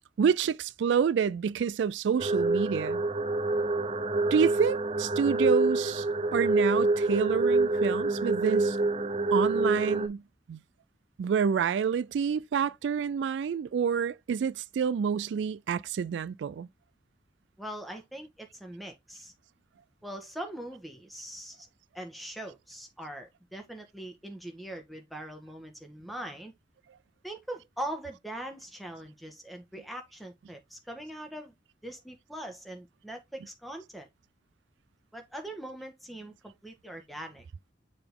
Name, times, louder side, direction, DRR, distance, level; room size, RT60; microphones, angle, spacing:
voice 1, 0.2-3.0 4.3-6.1 6.3-8.8 9.3-10.2 10.5-10.6 11.2-16.7, right 7 dB, 80° right, 0.3 m, -28 dB
sound 1, 2.2-10.1, right 2 dB, 35° right, 0.7 m, -27 dB
voice 2, 17.6-19.3 20.0-21.7 21.9-26.5 27.2-31.5 31.8-34.1 35.1-37.4, right 1 dB, ahead, 1.5 m, -41 dB
6.9 x 3.8 x 3.6 m
head